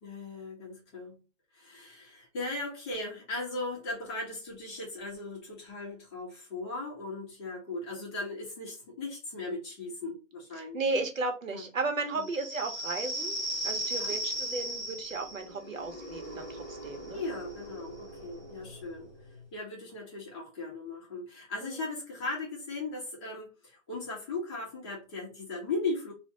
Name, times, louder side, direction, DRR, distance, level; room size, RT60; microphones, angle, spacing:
voice 1, 0.0-1.2 1.5-10.8 11.5-11.7 12.1-12.3 13.9-14.1 17.1-19.1 19.5-26.1, left 3 dB, 20° left, -4 dB, 1.4 m, -38 dB
voice 2, 10.6-17.2 21.6-21.8, right 3 dB, 75° right, 4 dB, 1.1 m, -34 dB
sound 1, 12.2-19.4, right 1 dB, 10° right, 0.5 m, -37 dB
3.2 x 2.5 x 2.9 m, 0.30 s
hypercardioid pair, 155°, 40 cm